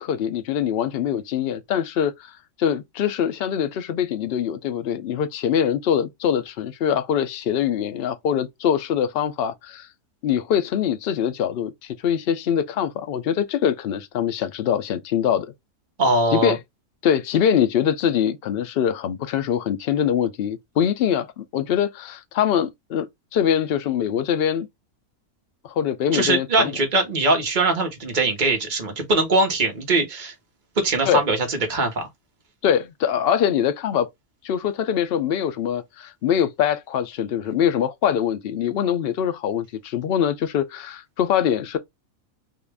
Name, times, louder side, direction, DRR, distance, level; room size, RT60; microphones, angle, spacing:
voice 1, 0.0-2.3 2.6-9.9 10.2-15.5 16.3-16.6 17.0-23.1 23.3-24.7 25.6-26.8 31.0-31.2 32.6-34.1 34.4-41.8, left 9 dB, 65° left, 0.6 m, -23 dB
voice 2, 16.0-16.6 26.1-30.3 30.8-32.1, right 2 dB, 35° right, 1.2 m, -21 dB
3.8 x 2.5 x 3.4 m
omnidirectional pair, 1.5 m